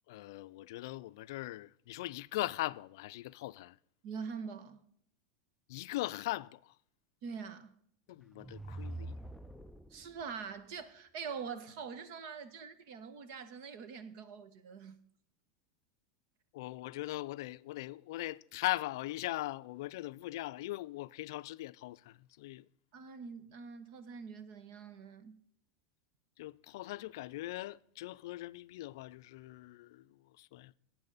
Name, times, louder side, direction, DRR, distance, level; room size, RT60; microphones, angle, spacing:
voice 1, 0.1-3.8 5.7-6.7 8.1-9.2 16.5-22.7 26.4-30.7, left 17 dB, 70° left, 0.4 m, -40 dB
voice 2, 4.0-4.8 7.2-7.7 8.4-8.5 9.9-15.0 22.9-25.4, right 6 dB, 55° right, 1.2 m, -44 dB
space jet, 8.2-10.2, right 2 dB, ahead, 0.4 m, -45 dB
12.0 x 8.9 x 4.0 m
supercardioid pair, 145°, 2 cm